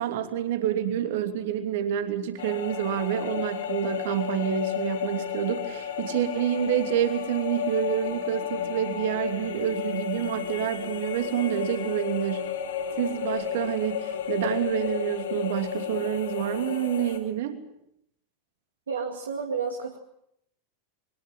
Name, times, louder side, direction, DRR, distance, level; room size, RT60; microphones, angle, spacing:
voice 1, 0.0-12.5 13.0-17.6, right 10 dB, 55° right, 7 dB, 2.8 m, -28 dB
sound 1, 2.4-17.2, left 8 dB, 65° left, 5.5 m, -32 dB
voice 2, 18.9-20.0, right 5 dB, 70° right, 3 dB, 2.1 m, -31 dB
23.0 x 21.5 x 7.7 m, 0.76 s
figure-of-eight pair, 90°, 0 cm